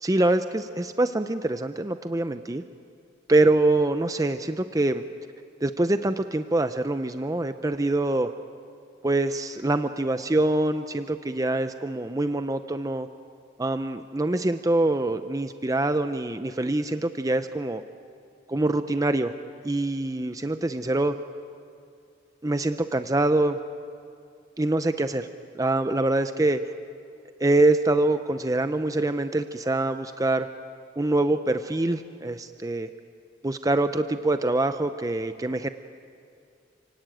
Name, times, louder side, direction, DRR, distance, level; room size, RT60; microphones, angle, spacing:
voice 1, 0.0-2.6 3.3-5.0 5.6-8.3 9.0-13.1 13.6-17.8 18.5-19.3 19.6-21.1 22.4-23.6 24.6-25.3 25.5-26.6 27.4-30.5 31.0-32.9 33.4-35.7, right 2 dB, 20° right, 9 dB, 0.6 m, -24 dB
29.5 x 17.5 x 9.2 m, 2.4 s
head